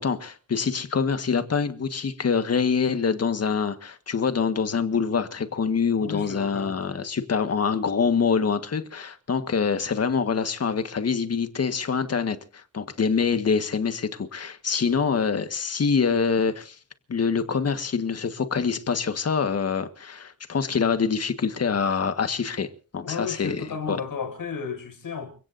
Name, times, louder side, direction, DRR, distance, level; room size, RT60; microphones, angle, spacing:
voice 1, 0.0-16.8 17.1-22.7 22.9-23.6 23.9-24.0, left 5 dB, 45° left, 1.7 m, -25 dB
voice 2, 6.0-7.0 23.0-25.3, left 5 dB, 65° left, 6.9 m, -33 dB
29.5 x 17.0 x 2.7 m
wide cardioid pair, 145°, 36 cm